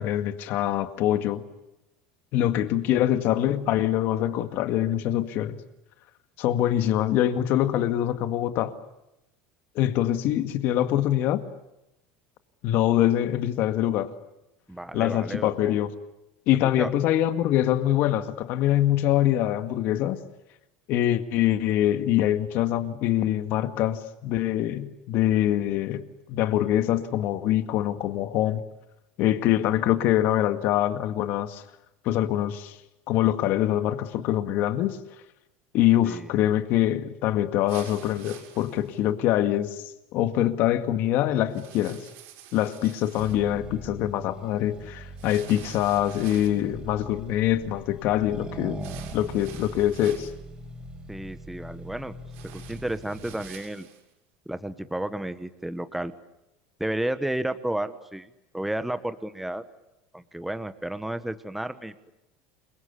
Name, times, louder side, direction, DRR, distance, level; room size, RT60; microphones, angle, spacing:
voice 1, 0.0-1.4 2.3-5.6 6.4-8.7 9.8-11.5 12.6-14.1 14.9-15.9 16.5-20.2 20.9-28.6 29.2-31.6 32.0-32.8 33.1-35.0 35.7-39.8 40.1-42.0 42.5-50.3, left 12 dB, 55° left, 9 dB, 2.0 m, -24 dB
voice 2, 14.7-15.7 16.8-16.9 36.0-36.3 51.1-52.1 52.5-53.9 54.5-56.1 56.8-59.6 60.1-62.1, right 1 dB, 5° right, 11 dB, 1.3 m, -32 dB
sound 1, 37.7-39.0 41.5-43.4 45.2-46.7 48.8-50.3 52.3-54.0, right 10 dB, 65° right, 6.3 m, -47 dB
Accelerating revving vroom, 43.2-53.6, right 2 dB, 20° right, 5.1 m, -41 dB
28.5 x 23.0 x 8.5 m, 0.91 s
supercardioid pair, 130°, 4 cm